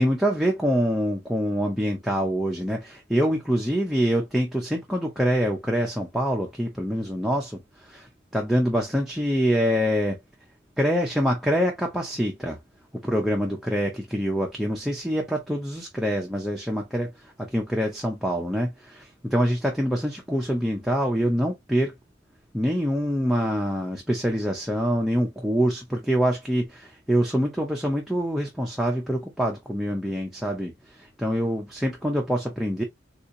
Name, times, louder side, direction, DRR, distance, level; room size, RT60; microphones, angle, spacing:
voice 1, 0.0-10.2 10.8-12.6 13.0-22.0 22.5-32.8, equal, ahead, 0.6 m, -25 dB
3.6 x 2.8 x 2.5 m
head